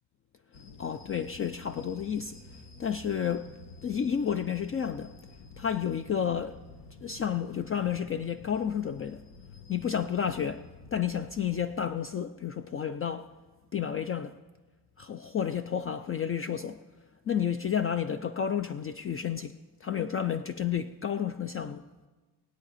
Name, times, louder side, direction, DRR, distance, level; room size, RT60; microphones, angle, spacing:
sound 1, 0.5-11.9, left 3 dB, 75° left, 1.3 m, -50 dB
voice 1, 0.8-2.4 2.8-3.5 3.8-5.1 5.6-6.6 7.0-9.2 9.7-13.3 13.7-14.4 15.0-16.8 17.3-19.5 19.8-21.9, left 8 dB, 35° left, 0.4 m, -31 dB
19.5 x 9.0 x 4.1 m
cardioid pair, 90°, 41 cm